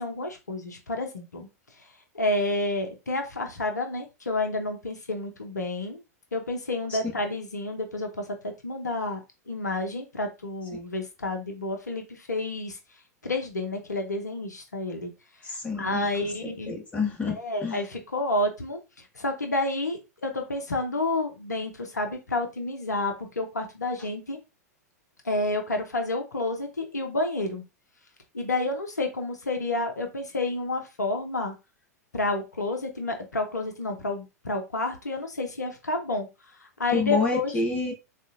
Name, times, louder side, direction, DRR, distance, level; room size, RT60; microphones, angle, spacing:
voice 1, 0.0-1.5 2.1-6.0 6.3-9.2 9.5-12.8 13.2-15.1 15.5-16.8 17.4-24.4 25.2-27.6 28.3-31.5 32.1-36.3 36.6-37.5, left 2 dB, 85° left, 0.7 m, -30 dB
voice 2, 15.4-16.1 16.4-17.8 36.9-37.9, left 3 dB, 15° left, 1.0 m, -28 dB
3.8 x 2.4 x 2.5 m
figure-of-eight pair, 100°, 9 cm